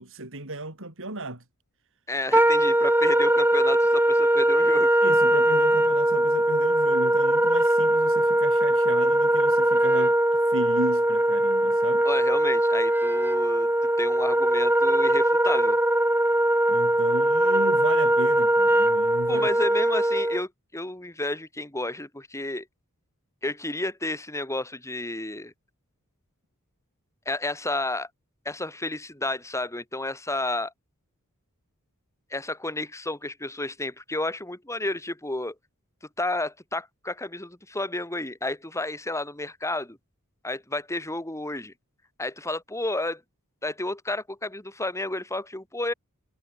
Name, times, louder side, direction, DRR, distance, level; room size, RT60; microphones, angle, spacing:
voice 1, 0.0-1.4 5.0-12.1 16.7-19.5, right 2 dB, 60° right, 6.8 m, -34 dB
voice 2, 2.1-5.0 12.0-13.7 14.0-15.8 19.3-22.7 23.4-25.5 27.3-28.1 28.4-30.7 32.3-35.5 36.2-40.0 40.4-41.7 42.2-43.2 43.6-45.9, left 2 dB, 15° left, 4.2 m, -31 dB
Wind instrument woodwind instrument, 2.3-20.4, right 1 dB, 10° right, 3.4 m, -21 dB
head